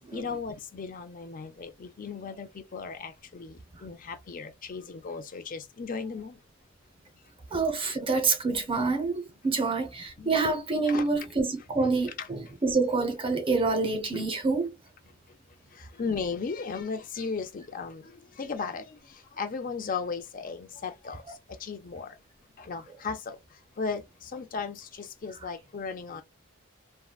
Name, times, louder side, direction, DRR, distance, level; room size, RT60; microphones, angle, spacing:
voice 1, 0.1-6.4 10.2-10.4 10.8-11.3 12.2-12.3 15.7-22.2 22.6-26.2, left 5 dB, 40° left, 0.5 m, -36 dB
voice 2, 7.5-14.7, right 3 dB, 25° right, 0.6 m, -27 dB
3.6 x 2.2 x 2.3 m
head